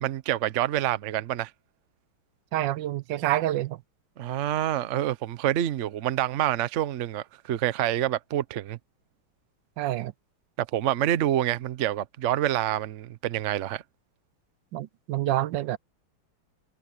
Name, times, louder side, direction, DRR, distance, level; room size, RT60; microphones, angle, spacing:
voice 1, 0.0-1.5 4.2-8.8 10.6-13.8, right 12 dB, 90° right, 0.6 m, -27 dB
voice 2, 2.5-3.8 9.8-10.1 14.7-15.8, right 14 dB, 75° right, 1.1 m, -27 dB
omnidirectional pair, 2.3 m